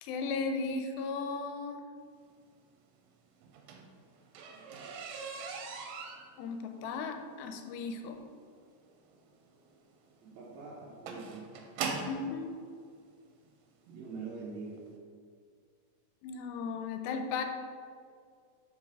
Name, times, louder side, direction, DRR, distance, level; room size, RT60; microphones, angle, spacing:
voice 1, 0.0-1.8 6.4-8.2 12.1-12.6 16.2-17.4, left 4 dB, 85° left, 6 dB, 2.4 m, -36 dB
sound 1, 3.4-12.3 13.2-13.3 13.8-14.1 14.3-14.4 14.8-14.9, right 5 dB, 85° right, 2.5 m, -41 dB
voice 2, 10.3-11.5 13.9-14.8, right 4 dB, 70° right, -5 dB, 1.8 m, -43 dB
5.3 x 4.7 x 5.2 m, 2.1 s
omnidirectional pair, 4.2 m